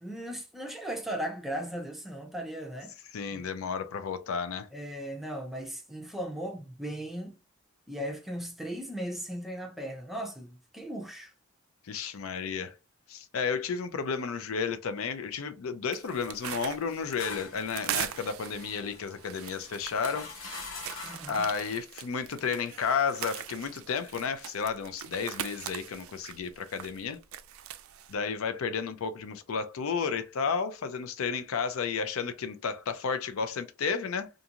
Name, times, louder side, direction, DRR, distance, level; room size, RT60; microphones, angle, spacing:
voice 1, 0.0-2.9 3.3-3.5 4.7-7.4 7.9-11.3 21.0-21.5, right 1 dB, ahead, 0.5 m, -37 dB
voice 2, 3.1-4.7 11.9-12.7 13.1-20.3 21.3-27.2 28.1-34.3, left 5 dB, 90° left, 0.4 m, -32 dB
sound 1, 15.9-28.1, right 11 dB, 80° right, 0.3 m, -41 dB
sound 2, 16.7-21.4, left 3 dB, 70° left, 0.8 m, -44 dB
2.5 x 2.4 x 2.8 m
head